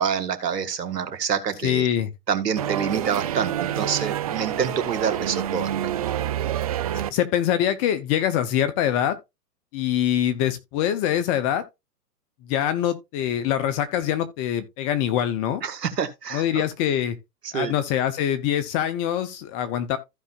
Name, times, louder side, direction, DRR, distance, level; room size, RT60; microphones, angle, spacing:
voice 1, 0.0-1.9 2.3-5.7 15.6-16.6 17.4-17.7, right 7 dB, 85° right, 1.8 m, -27 dB
voice 2, 1.6-2.1 6.9-9.2 9.7-11.6 12.4-15.6 16.3-17.2 17.5-20.0, left 10 dB, 20° left, 0.6 m, -24 dB
sound 1, 2.6-7.1, right 11 dB, 25° right, 0.4 m, -27 dB
15.0 x 5.4 x 2.4 m
hypercardioid pair, 130°, 47 cm